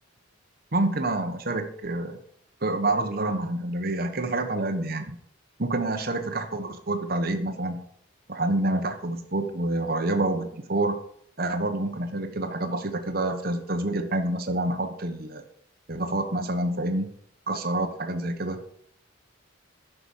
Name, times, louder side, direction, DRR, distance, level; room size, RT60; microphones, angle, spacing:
voice 1, 0.7-2.2 2.6-5.2 5.6-7.8 8.3-10.9 11.4-15.4 15.9-17.1 17.5-18.6, right 2 dB, 45° right, 5 dB, 1.1 m, -27 dB
10.5 x 6.0 x 7.2 m, 0.67 s
head